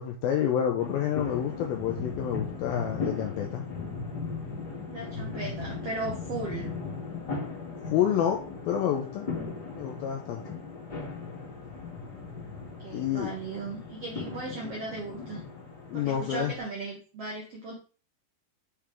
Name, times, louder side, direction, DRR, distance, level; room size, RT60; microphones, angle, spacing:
voice 1, 0.0-3.6 7.9-8.4 8.7-9.3 9.7-10.6 12.9-13.3 15.9-16.5, left 9 dB, 85° left, 2 dB, 2.1 m, -28 dB
sound 1, 0.8-16.6, left 4 dB, 30° left, 2.0 m, -38 dB
voice 2, 4.9-6.7 12.6-15.4 15.9-17.7, right 3 dB, 75° right, -3 dB, 1.4 m, -37 dB
7.3 x 4.9 x 3.4 m, 0.37 s
omnidirectional pair, 5.1 m